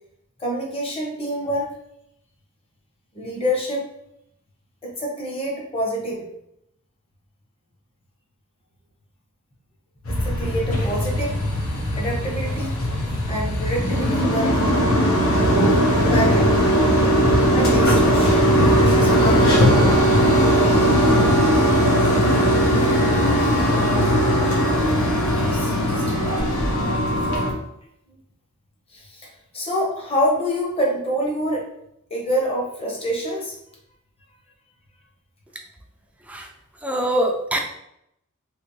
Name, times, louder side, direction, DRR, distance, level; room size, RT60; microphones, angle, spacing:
voice 1, 0.4-1.7 3.1-3.9 4.8-6.3 10.1-11.4 11.9-13.0 13.3-14.7 15.4-16.5 17.5-19.6 23.4-24.2 25.4-26.4 28.1-28.2 28.9-31.7 32.1-33.6, equal, 25° left, -2 dB, 0.9 m, -27 dB
sound 1, 10.1-27.5, equal, 90° left, 1.0 m, -18 dB
voice 2, 36.8-37.6, right 1 dB, 5° right, 1 dB, 0.4 m, -23 dB
3.4 x 2.9 x 3.1 m, 0.79 s
head